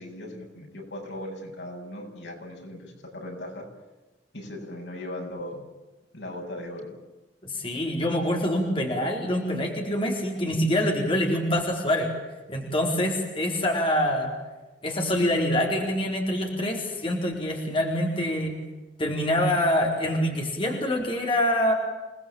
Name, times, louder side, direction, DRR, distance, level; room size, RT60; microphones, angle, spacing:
voice 1, 0.0-3.7 4.3-5.7 6.1-7.0, left 1 dB, 75° left, 2 dB, 7.8 m, -38 dB
voice 2, 7.4-12.1 12.5-14.3 14.8-18.5 19.0-21.7, left 1 dB, 30° left, 0 dB, 4.4 m, -25 dB
28.5 x 20.5 x 8.8 m, 1.1 s
head